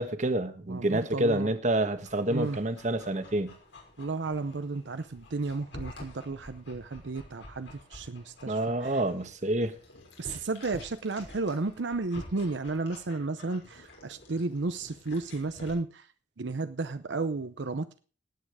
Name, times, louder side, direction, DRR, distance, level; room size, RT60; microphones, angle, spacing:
voice 1, 0.0-3.5 8.5-9.7, right 1 dB, 40° right, 9 dB, 1.4 m, -28 dB
voice 2, 0.7-1.5 2.3-2.6 4.0-8.9 10.2-16.0 16.4-18.0, right 3 dB, 80° right, 10 dB, 0.7 m, -33 dB
Dog, 1.9-15.7, left 1 dB, 85° left, 6.1 m, -49 dB
17.5 x 8.8 x 4.8 m, 0.38 s
head